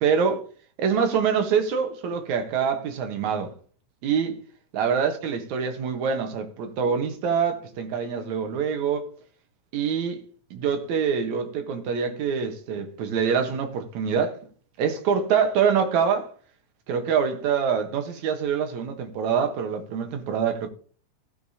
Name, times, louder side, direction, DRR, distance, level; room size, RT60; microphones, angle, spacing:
voice 1, 0.0-0.4 0.8-3.5 4.0-4.4 4.7-9.1 9.7-10.2 10.5-14.4 14.8-16.3 16.9-20.7, right 6 dB, 65° right, 2.3 m, -25 dB
16.0 x 6.7 x 2.8 m
omnidirectional pair, 4.0 m